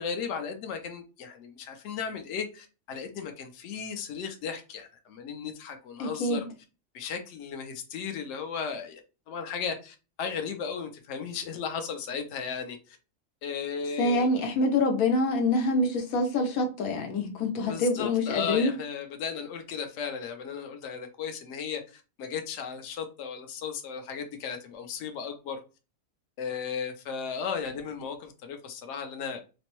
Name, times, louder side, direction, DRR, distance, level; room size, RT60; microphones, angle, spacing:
voice 1, 0.0-6.4 6.9-9.0 9.3-13.0 13.4-14.4 17.6-25.6 26.4-29.4, left 6 dB, 65° left, 0.9 m, -35 dB
voice 2, 6.0-6.4 14.0-18.7, left 2 dB, 80° left, 1.2 m, -26 dB
4.3 x 2.0 x 3.0 m
omnidirectional pair, 1.5 m